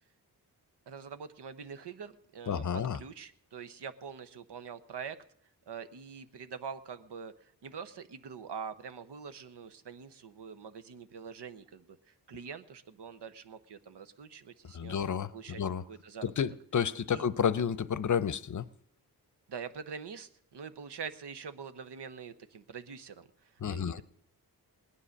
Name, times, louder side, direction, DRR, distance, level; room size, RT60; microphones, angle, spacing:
voice 1, 0.9-2.6 2.9-5.2 5.7-15.0 15.3-16.4 17.1-17.2 19.5-24.0, right 6 dB, 80° right, 11 dB, 1.0 m, -44 dB
voice 2, 2.5-3.0 14.7-15.8 16.2-18.7 23.6-24.0, left 7 dB, 45° left, 18 dB, 0.7 m, -31 dB
19.0 x 10.0 x 6.5 m, 0.64 s
cardioid pair, 70°, 41 cm